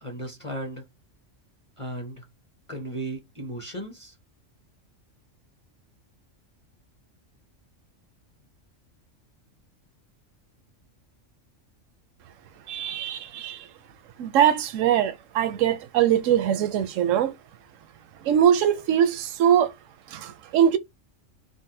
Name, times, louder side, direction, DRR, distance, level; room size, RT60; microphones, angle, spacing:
voice 1, 0.0-0.8 1.8-2.2 2.7-4.1, right 1 dB, 30° left, 0.7 m, -35 dB
voice 2, 12.7-13.6 14.2-17.3 18.2-19.7 20.1-20.8, right 9 dB, 80° right, 1.0 m, -22 dB
3.8 x 2.1 x 2.7 m
omnidirectional pair, 1.3 m